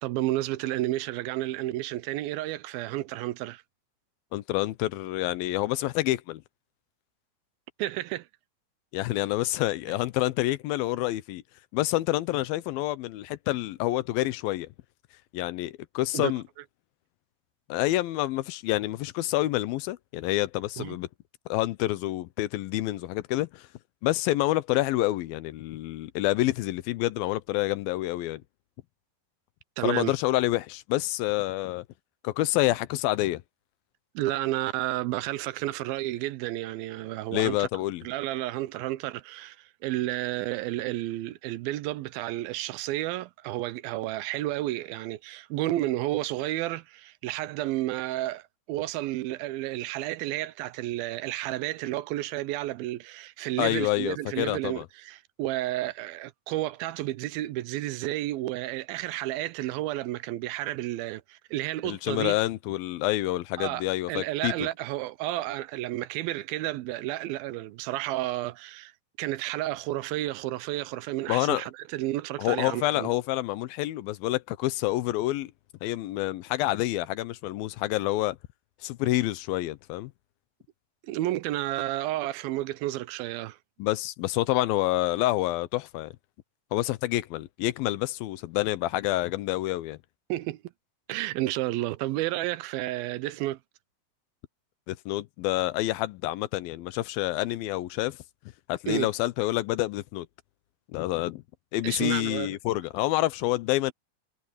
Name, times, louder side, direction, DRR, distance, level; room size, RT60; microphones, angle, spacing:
voice 1, 0.0-3.6 7.8-8.3 16.1-16.3 20.8-21.0 29.8-30.1 34.2-37.7 38.0-62.4 63.6-68.9 69.2-73.1 81.0-83.6 90.3-90.7 91.1-93.6 98.9-99.1 101.8-102.6, right 16 dB, 85° right, 2.6 m, -31 dB
voice 2, 4.3-6.4 8.9-11.4 11.7-14.7 15.3-16.4 17.7-21.1 21.5-23.7 24.0-28.4 29.8-31.8 32.2-33.4 37.3-38.0 53.6-54.9 61.8-64.7 71.3-71.6 72.4-75.5 75.8-78.4 78.8-80.1 83.8-86.1 86.7-90.0 94.9-98.2 98.7-100.3 100.9-101.4 101.7-103.9, left 17 dB, 85° left, 2.6 m, -28 dB
omnidirectional pair, 4.1 m